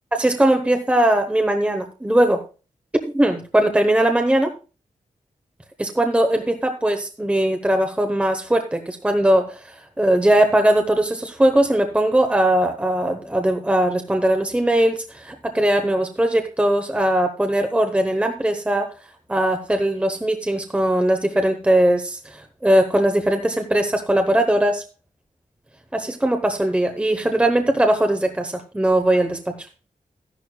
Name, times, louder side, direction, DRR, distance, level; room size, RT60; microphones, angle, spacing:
voice 1, 0.1-2.4 3.1-4.5 5.8-18.9 19.3-24.8 25.9-29.7, right 1 dB, 10° right, 5 dB, 1.0 m, -20 dB
13.5 x 11.0 x 2.3 m, 0.32 s
wide cardioid pair, 175°, 14 cm